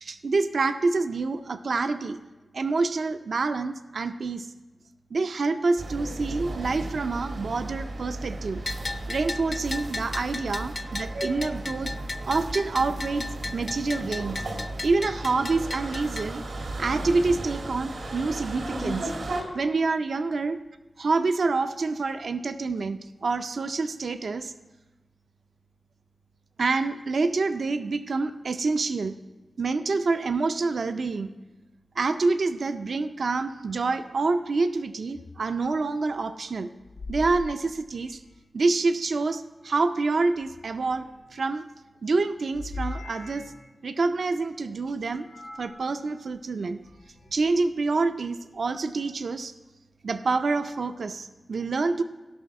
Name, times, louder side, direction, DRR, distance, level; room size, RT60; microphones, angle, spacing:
voice 1, 0.0-2.2 2.5-4.5 5.1-8.6 9.1-11.9 12.3-14.4 14.8-19.1 19.5-20.6 21.0-24.5 26.6-29.2 29.6-31.3 32.0-36.7 37.1-38.2 38.5-41.6 42.0-43.5 43.8-45.3 45.6-46.8 47.3-49.5 50.0-52.0, right 3 dB, 65° right, 9 dB, 0.4 m, -27 dB
sound 1, 5.8-19.4, right 2 dB, 85° right, 1.8 m, -35 dB
Bell, 8.7-16.3, left 2 dB, 35° left, 0.5 m, -36 dB
sound 2, 35.1-35.4 36.8-38.5 40.4-41.5 42.5-43.7 45.1-45.8 46.7-47.6, left 2 dB, 85° left, 3.4 m, -41 dB
16.5 x 5.9 x 4.6 m, 1.1 s
wide cardioid pair, 130°, 0 cm